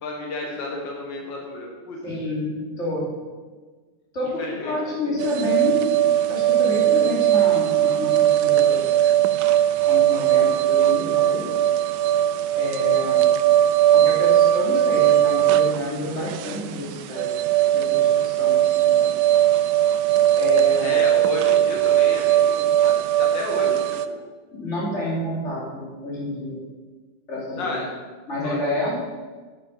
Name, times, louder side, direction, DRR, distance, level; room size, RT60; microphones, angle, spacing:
voice 1, 0.0-2.0 4.4-5.0 20.8-24.2 27.6-27.9 28.4-28.9, left 2 dB, 85° left, 0 dB, 2.2 m, -32 dB
voice 2, 2.0-3.1 4.1-5.9 6.3-8.8 9.8-11.5 12.6-13.3 13.9-17.3 17.7-19.0 20.4-21.0 24.5-26.6 27.3-27.8 28.3-29.0, left 2 dB, 40° left, -5 dB, 3.5 m, -29 dB
sound 1, 5.2-24.1, right 12 dB, 75° right, 1.2 m, -19 dB
9.6 x 9.3 x 5.4 m, 1.4 s
omnidirectional pair, 1.9 m